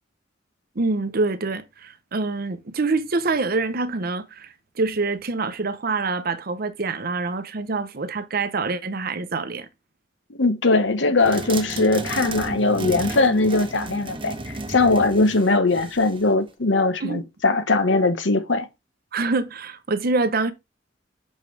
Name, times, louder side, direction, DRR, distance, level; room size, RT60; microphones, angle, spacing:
voice 1, 0.8-9.7 17.0-17.2 19.1-20.5, right 3 dB, 55° right, 0.8 m, -25 dB
voice 2, 10.3-18.7, left 3 dB, 75° left, 1.0 m, -20 dB
sound 1, 11.2-16.3, right 2 dB, 30° right, 1.0 m, -33 dB
6.3 x 5.3 x 3.3 m
head